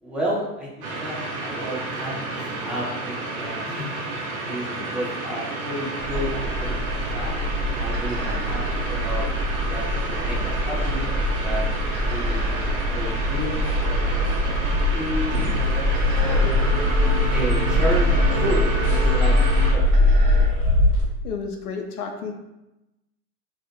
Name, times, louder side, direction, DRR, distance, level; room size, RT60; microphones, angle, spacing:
voice 1, 0.0-4.2 4.5-6.3 6.6-6.7 7.1-7.3 7.8-9.8 10.2-11.0 11.4-11.6 12.1-13.6 14.0-16.7 17.3-19.4 19.7-20.2, right 1 dB, ahead, -7 dB, 0.7 m, -32 dB
sound 1, 0.8-19.7, right 2 dB, 80° right, 0.7 m, -30 dB
sound 2, 6.0-20.5, left 1 dB, 45° right, 0.5 m, -22 dB
sound 3, 13.4-14.4 14.7-15.0 15.3-15.5 15.9-21.0, left 1 dB, 35° left, 0.7 m, -29 dB
voice 2, 21.2-22.3, left 5 dB, 80° left, 3 dB, 0.5 m, -32 dB
2.1 x 2.0 x 2.9 m, 0.94 s
hypercardioid pair, 90°, 44 cm